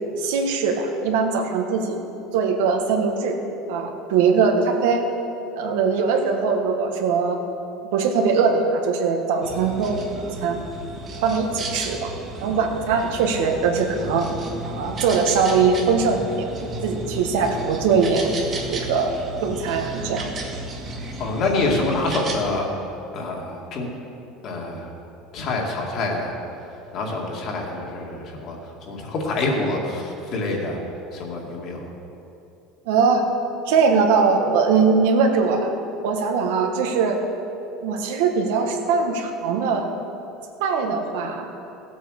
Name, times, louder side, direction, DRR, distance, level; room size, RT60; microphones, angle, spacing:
voice 1, 0.2-2.0 2.3-3.4 3.7-5.0 5.5-7.4 7.9-10.0 10.4-10.6 11.2-12.1 12.4-14.3 14.6-16.5 16.8-18.3 18.7-19.1 19.4-20.3 32.9-33.3 33.7-35.7 36.0-37.2 37.8-39.9 40.6-41.5, right 5 dB, 85° right, 3 dB, 1.6 m, -21 dB
sound 1, 9.4-22.4, right 2 dB, 25° right, 1.7 m, -33 dB
voice 2, 21.2-22.7 23.1-23.9 24.4-24.9 25.3-26.3 26.9-30.8 31.1-31.9, left 2 dB, 40° left, -1 dB, 2.3 m, -26 dB
16.0 x 8.1 x 6.6 m, 2.8 s
cardioid pair, 160°, 0 cm